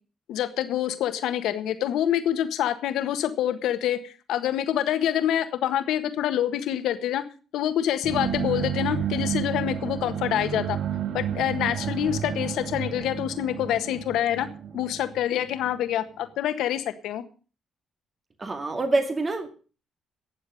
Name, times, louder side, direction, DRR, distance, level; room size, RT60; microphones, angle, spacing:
voice 1, 0.3-7.2 7.5-10.8 11.1-14.5 14.7-17.2, left 11 dB, 70° left, 10 dB, 1.5 m, -26 dB
sound 1, 8.0-15.8, right 8 dB, 60° right, 1.1 m, -31 dB
voice 2, 18.4-19.5, right 2 dB, 35° right, 7 dB, 2.1 m, -26 dB
18.0 x 7.2 x 6.4 m, 0.38 s
hypercardioid pair, 45°, 0 cm